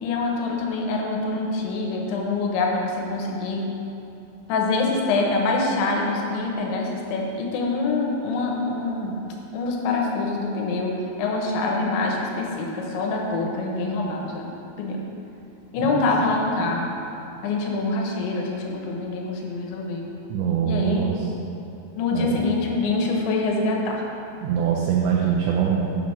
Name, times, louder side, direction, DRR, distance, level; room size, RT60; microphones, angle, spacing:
voice 1, 0.0-3.7 4.5-9.2 9.5-14.5 14.8-15.0 15.7-16.9 17.4-20.1 20.6-21.1 22.0-24.0, left 3 dB, 85° left, 0 dB, 3.3 m, -25 dB
voice 2, 20.3-21.2 22.1-22.4 24.4-25.8, right 8 dB, 85° right, -3 dB, 3.0 m, -23 dB
7.5 x 7.4 x 5.0 m, 2.8 s
omnidirectional pair, 5.1 m